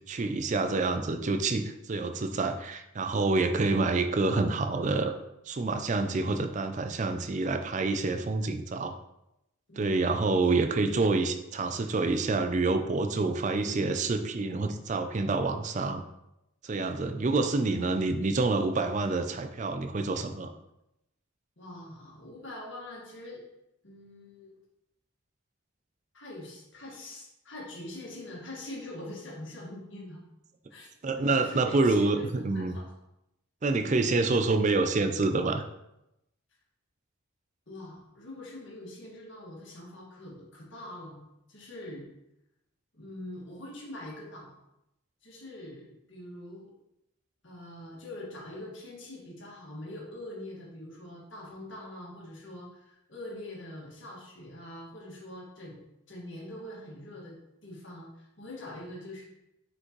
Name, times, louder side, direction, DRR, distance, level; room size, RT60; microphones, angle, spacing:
voice 1, 0.1-5.1 5.5-8.9 9.8-16.0 16.6-20.5 31.0-32.8 33.6-35.7, right 3 dB, 35° right, 7 dB, 0.4 m, -27 dB
voice 2, 9.7-10.0 21.6-23.4 23.8-24.6 26.1-30.2 30.7-30.9 31.1-32.9 37.7-42.1 42.9-44.5 45.2-46.7 47.4-57.3 57.6-59.2, left 1 dB, 60° left, -4 dB, 1.9 m, -44 dB
6.0 x 5.1 x 3.1 m, 0.87 s
head